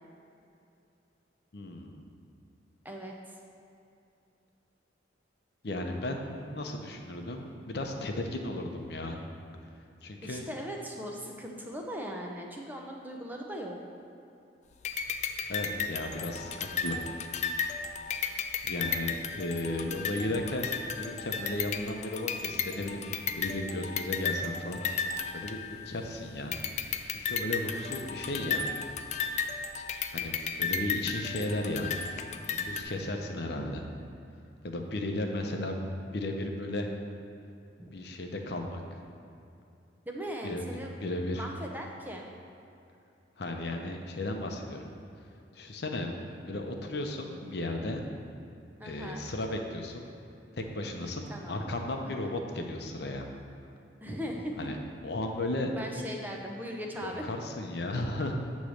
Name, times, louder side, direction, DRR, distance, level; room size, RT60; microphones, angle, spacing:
voice 1, 1.5-2.1 5.6-9.2 10.0-10.5 15.5-17.0 18.6-20.7 20.9-24.8 25.3-26.6 26.9-28.7 30.1-32.0 32.5-33.8 34.6-35.8 36.1-36.9 37.9-39.0 40.4-41.5 43.4-44.9 45.5-46.1 46.5-48.0 48.8-50.0 50.5-53.2 54.6-54.8 55.0-55.7 57.0-58.3, left 1 dB, 60° left, 3 dB, 0.7 m, -35 dB
voice 2, 2.8-3.4 10.2-13.8 34.8-34.9 37.8-37.9 40.1-40.9 41.3-42.2 48.8-49.3 51.3-51.7 52.0-52.3 54.0-54.7 55.7-57.3, equal, 10° right, 0 dB, 0.6 m, -39 dB
sound 1, 14.8-26.1 26.5-32.8, left 6 dB, 40° left, 0.3 m, -34 dB
8.4 x 3.1 x 6.3 m, 2.7 s
head